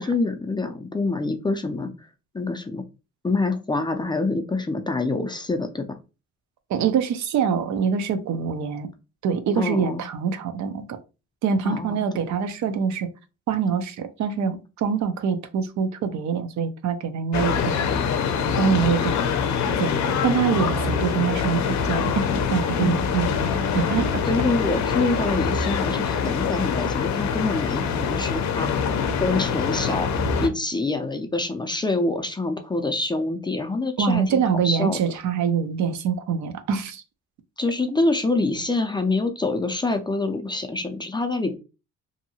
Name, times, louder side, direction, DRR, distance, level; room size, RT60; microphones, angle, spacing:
voice 1, 0.0-1.9 2.3-2.8 3.2-6.0 9.5-10.0 11.6-12.0 22.8-23.0 24.3-28.7 29.2-30.1 30.4-35.0 37.6-41.6, left 3 dB, 15° left, 0.4 m, -26 dB
voice 2, 6.7-8.9 9.2-11.0 11.4-13.1 13.5-17.9 18.6-19.4 19.8-24.1 34.0-37.0, right 6 dB, 70° right, 0.6 m, -25 dB
sound 1, 17.3-30.5, left 6 dB, 65° left, 0.6 m, -24 dB
2.7 x 2.6 x 2.7 m
cardioid pair, 90°, 30 cm